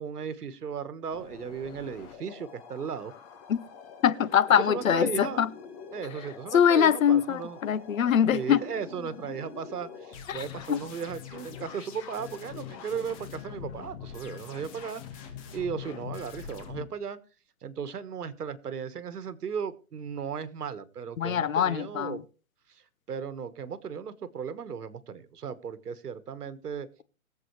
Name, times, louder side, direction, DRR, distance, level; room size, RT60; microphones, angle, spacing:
voice 1, 0.0-3.1 4.6-5.4 5.9-7.6 8.3-17.2 17.6-22.2 22.7-26.9, right 7 dB, 90° right, 1.5 m, -36 dB
sound 1, 1.1-16.8, left 7 dB, 25° left, 1.4 m, -44 dB
voice 2, 4.0-5.5 6.5-8.6 10.3-10.4 10.7-10.8 21.2-22.2, left 9 dB, 60° left, 1.0 m, -23 dB
23.0 x 7.8 x 3.2 m
hypercardioid pair, 160°, 45 cm